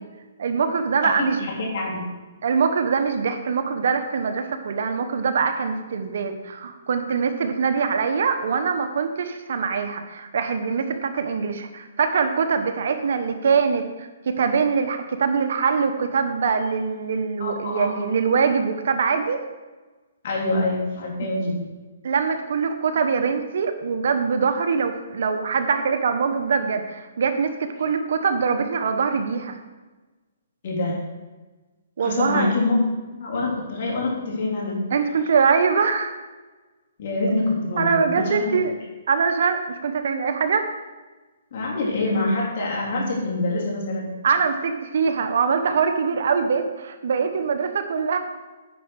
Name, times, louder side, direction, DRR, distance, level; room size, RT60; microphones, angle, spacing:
voice 1, 0.4-1.5 2.4-19.4 22.0-29.6 32.0-32.6 34.9-36.1 37.8-38.7 39.1-40.7 44.2-48.2, right 5 dB, 65° right, 7 dB, 1.0 m, -23 dB
voice 2, 1.0-2.0 17.4-18.0 20.2-21.6 30.6-31.0 32.0-34.8 37.0-38.7 41.5-44.1, left 2 dB, 50° left, -3 dB, 3.3 m, -25 dB
9.8 x 5.4 x 6.3 m, 1.2 s
hypercardioid pair, 155°, 0 cm